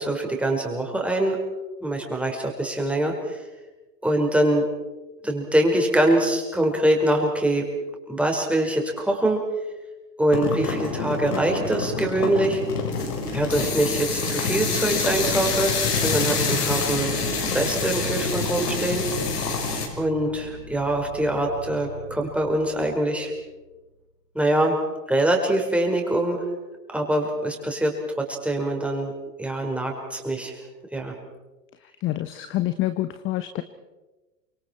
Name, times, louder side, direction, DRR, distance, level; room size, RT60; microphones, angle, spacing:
voice 1, 0.0-1.4 1.8-3.4 4.0-4.6 5.2-7.7 8.1-9.4 10.2-12.6 13.3-17.1 17.5-19.0 20.0-23.3 24.3-24.8 25.1-26.4 26.9-27.9 28.2-29.1 29.4-30.5 30.9-31.1, right 1 dB, 5° right, 1 dB, 4.9 m, -24 dB
sound 1, 10.3-19.9, left 4 dB, 70° left, 5.3 m, -26 dB
sound 2, 11.4-23.8, left 1 dB, 55° left, 7.4 m, -40 dB
voice 2, 31.8-33.6, left 15 dB, 25° left, 11 dB, 1.0 m, -27 dB
28.5 x 26.0 x 4.6 m, 1.1 s
figure-of-eight pair, 100°, 49 cm